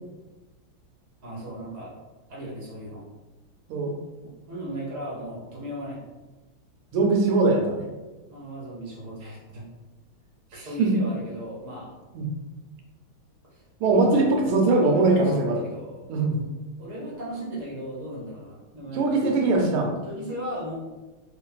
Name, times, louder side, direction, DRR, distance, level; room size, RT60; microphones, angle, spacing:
voice 1, 1.2-1.9 2.3-3.0 4.2-6.0 8.3-9.6 10.5-11.9 13.5-13.6 13.9-16.1 16.8-19.2 19.7-20.7, equal, 60° right, -4 dB, 0.8 m, -37 dB
voice 2, 6.9-7.9 10.8-11.0 12.1-12.3 13.8-15.6 16.1-16.5 18.9-19.9, right 3 dB, 90° right, 2 dB, 1.4 m, -21 dB
3.2 x 2.4 x 2.3 m, 1.2 s
omnidirectional pair, 2.3 m